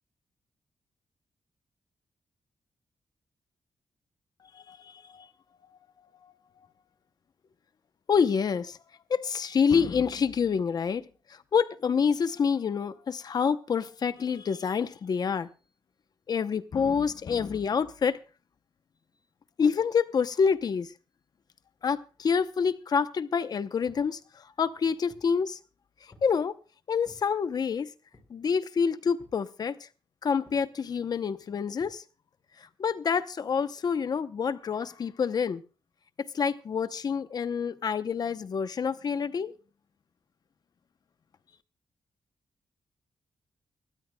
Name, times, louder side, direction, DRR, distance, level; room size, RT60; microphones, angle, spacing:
voice 1, 4.5-5.3 8.1-8.8 9.1-11.1 11.5-15.5 16.3-18.2 19.6-20.9 21.8-25.6 26.2-26.5 26.9-27.9 28.3-29.8 30.2-32.0 32.8-35.6 36.2-39.5, left 6 dB, 45° left, 0.7 m, -27 dB
sound 1, 23.9-24.1 24.7-25.4 26.1-26.4 27.0-27.3 28.1-28.5 29.2-29.5 30.4-30.7 31.8-32.0, left 2 dB, 25° left, 4.5 m, -57 dB
25.0 x 13.0 x 2.2 m
wide cardioid pair, 145°, 9 cm